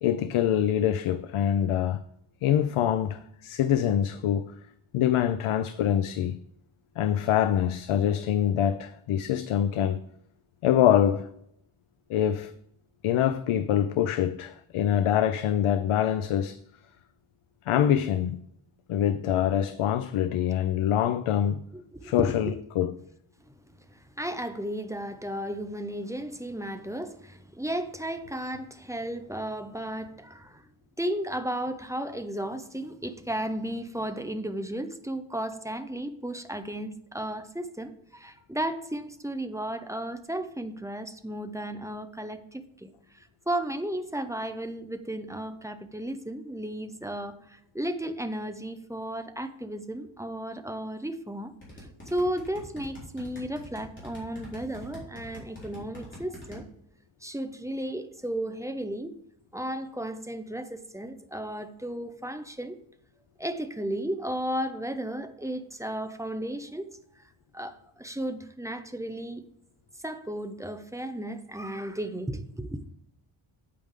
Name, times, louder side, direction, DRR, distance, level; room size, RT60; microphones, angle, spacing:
voice 1, 0.0-2.0 2.4-4.5 4.9-6.4 7.0-10.0 10.6-11.3 12.1-12.5 13.0-16.6 17.7-18.4 18.9-21.6 22.0-22.9, left 10 dB, 90° left, 0.6 m, -25 dB
voice 2, 21.7-22.4 23.8-30.6 31.0-51.5 51.8-56.7 57.2-59.1 59.5-62.8 63.4-67.0 67.5-69.4 70.0-72.8, right 1 dB, 5° right, 0.5 m, -34 dB
sound 1, 51.6-56.6, left 1 dB, 25° left, 4.0 m, -44 dB
8.9 x 8.6 x 3.6 m
wide cardioid pair, 175°, 49 cm